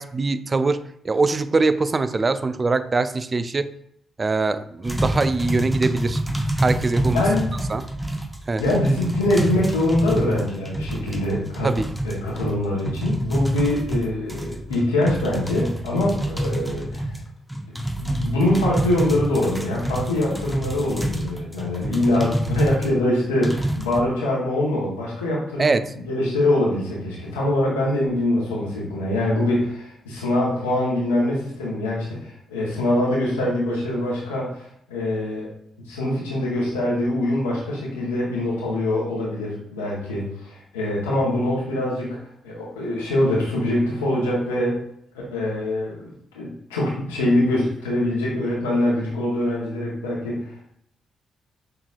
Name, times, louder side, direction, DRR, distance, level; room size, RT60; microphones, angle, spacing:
voice 1, 0.0-3.7 4.2-6.2 6.6-7.2 7.7-7.9 8.5-8.6 11.6-11.9 25.6-25.9, right 3 dB, 35° right, 12 dB, 0.3 m, -22 dB
sound 1, 4.8-22.9 23.4-24.0, right 1 dB, ahead, 0.6 m, -27 dB
voice 2, 7.0-7.5 8.6-11.7 12.0-17.1 17.7-25.7 26.1-35.5 35.9-42.2 42.4-44.8 45.3-50.7, left 1 dB, 90° left, -6 dB, 0.9 m, -24 dB
5.6 x 2.8 x 2.4 m, 0.71 s
hypercardioid pair, 40°, 0 cm